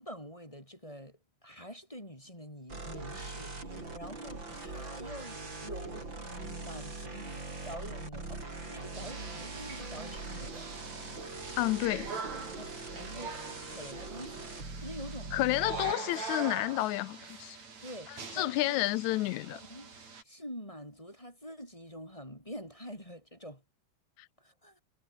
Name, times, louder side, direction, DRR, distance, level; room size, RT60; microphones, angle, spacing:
voice 1, 0.0-10.7 12.6-14.5 14.8-15.3 17.8-18.9 19.5-19.9 20.2-23.6 24.4-24.8, equal, 10° left, 7.3 m, -46 dB
sound 1, 2.7-15.9, right 3 dB, 35° right, 6.4 m, -42 dB
sound 2, 8.9-20.2, right 5 dB, 60° right, 5.9 m, -43 dB
voice 2, 11.6-12.1 15.3-17.6 18.1-19.6, left 18 dB, 80° left, 1.9 m, -30 dB
omnidirectional pair, 3.6 m